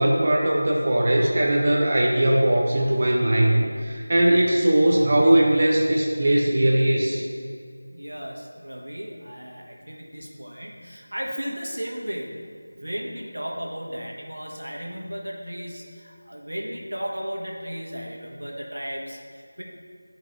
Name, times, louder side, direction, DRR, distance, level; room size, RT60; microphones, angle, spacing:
voice 1, 0.0-7.2, right 1 dB, 35° right, -2 dB, 0.6 m, -20 dB
voice 2, 7.9-12.5 12.8-19.6, equal, 85° right, -1 dB, 1.4 m, -35 dB
11.5 x 5.3 x 2.6 m, 2.2 s
figure-of-eight pair, 170°, 0 cm